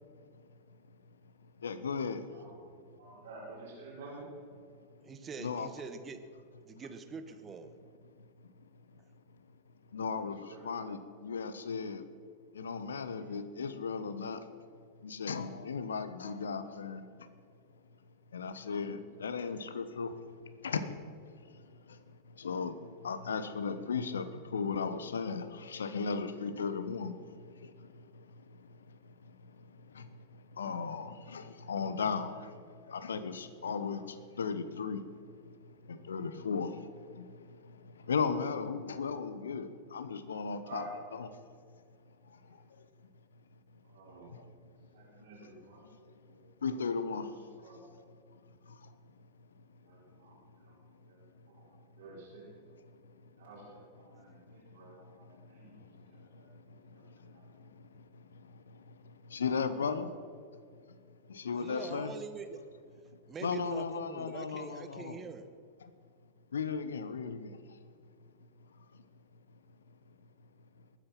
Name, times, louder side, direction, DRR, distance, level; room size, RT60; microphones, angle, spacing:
voice 1, 1.6-2.2 5.4-5.7 9.9-10.4 10.6-12.0 12.6-14.4 15.0-17.0 18.3-20.1 20.6-21.0 22.4-22.7 23.0-24.3 24.5-27.2 30.0-30.1 30.6-32.3 32.9-34.0 34.4-35.0 35.9-36.7 37.2-37.3 38.1-40.8 41.1-41.3 46.6-47.3 59.3-60.1 61.4-62.1 63.4-65.2 66.5-67.5, left 5 dB, 70° left, 12 dB, 1.0 m, -35 dB
voice 2, 3.0-4.2 10.5-10.6 13.2-13.3 40.6-40.9 43.8-44.3 44.9-46.4 47.1-47.3 47.6-47.8 49.8-50.7 51.1-51.2 51.5-51.6 52.0-52.5 53.4-57.0 57.3-57.4 57.7-57.9, right 3 dB, 55° right, -6 dB, 4.8 m, -51 dB
voice 3, 5.0-6.2 6.6-7.7 61.5-62.6 63.3-65.5, right 5 dB, 20° right, 9 dB, 1.2 m, -44 dB
20.5 x 9.3 x 5.8 m, 2.2 s
figure-of-eight pair, 90°, 0 cm